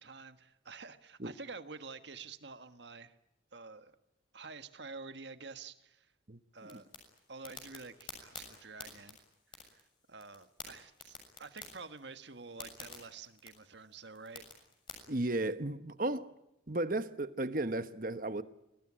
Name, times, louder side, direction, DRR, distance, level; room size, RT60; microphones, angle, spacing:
voice 1, 0.0-3.2 3.5-3.9 4.3-6.1 6.5-6.9 7.3-9.2 9.6-9.8 10.1-14.5, right 4 dB, 70° right, 1.6 m, -49 dB
voice 2, 6.3-6.8 15.1-16.3 16.7-18.4, right 2 dB, 45° right, 1.2 m, -35 dB
sound 1, 6.6-14.9, left 5 dB, 25° left, 6.9 m, -51 dB
26.0 x 19.0 x 10.0 m
head